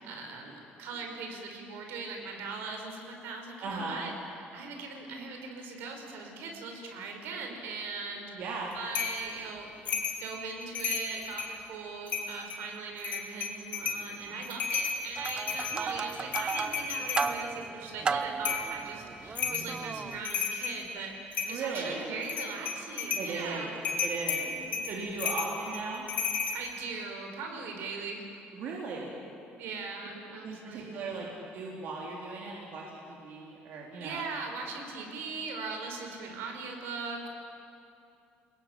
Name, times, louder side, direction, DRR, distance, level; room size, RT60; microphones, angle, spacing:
voice 1, 0.0-4.1 4.5-23.8 24.4-24.9 26.5-28.2 29.6-31.1 34.0-37.3, right 4 dB, 70° right, 3 dB, 5.3 m, -40 dB
voice 2, 3.6-4.0 8.3-8.7 14.3-14.4 15.7-15.9 21.5-22.0 23.2-23.7 24.0-24.5 24.8-26.1 28.5-29.1 30.4-31.3 31.5-34.2, right 4 dB, 50° right, -3 dB, 3.9 m, -37 dB
sound 1, 8.9-9.2 9.9-10.2 10.6-11.6 12.1-12.6 13.0-14.1 14.4-17.3 18.4-18.7 19.4-19.7 20.1-20.8 21.3-21.9 22.2-23.3 23.8-26.6, left 6 dB, 40° left, 3.7 m, -33 dB
sound 2, 15.2-20.2, right 5 dB, 20° right, 0.6 m, -35 dB
29.5 x 20.5 x 9.2 m, 2.7 s
cardioid pair, 165°, 4 cm